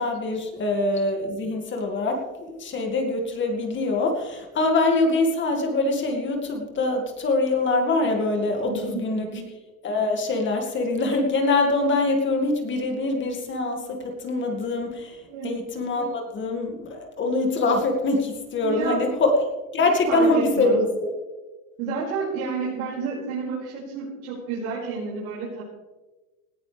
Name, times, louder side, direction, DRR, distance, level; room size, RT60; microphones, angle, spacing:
voice 1, 0.0-9.4 9.8-19.3 19.7-21.1, left 2 dB, 25° left, 3 dB, 2.2 m, -24 dB
voice 2, 8.7-9.4 15.3-15.5 18.6-19.0 20.0-20.8 21.8-25.6, right 4 dB, 70° right, -7 dB, 5.8 m, -30 dB
18.5 x 14.5 x 3.4 m, 1.2 s
supercardioid pair, 135°, 43 cm